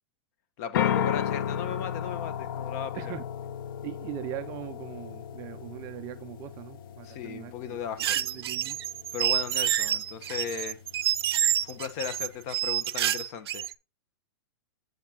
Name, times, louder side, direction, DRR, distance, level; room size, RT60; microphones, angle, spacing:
voice 1, 0.6-3.0 7.0-8.2 9.1-10.8 11.6-13.7, left 8 dB, 40° left, 1.2 m, -36 dB
sound 1, 0.7-12.5, left 9 dB, 60° left, 0.8 m, -35 dB
voice 2, 2.9-3.3 3.8-8.8, right 13 dB, 25° right, 0.5 m, -41 dB
sound 2, 8.0-13.7, right 12 dB, 75° right, 0.5 m, -28 dB
7.7 x 7.7 x 2.9 m
supercardioid pair, 160°, 13 cm